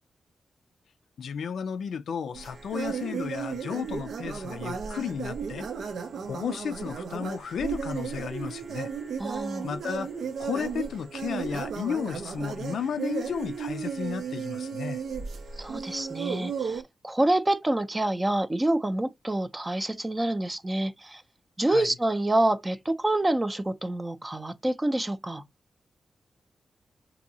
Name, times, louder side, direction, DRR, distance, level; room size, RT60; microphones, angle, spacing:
voice 1, 1.2-5.7 6.3-8.9 9.6-10.1 10.4-15.0 21.7-21.9, left 7 dB, 90° left, 0.3 m, -33 dB
sound 1, 2.3-16.8, right 6 dB, 85° right, 0.5 m, -34 dB
voice 2, 9.2-9.7 15.6-21.2 21.6-25.5, right 1 dB, 15° right, 0.5 m, -27 dB
3.9 x 2.7 x 2.7 m
wide cardioid pair, 105°, 0 cm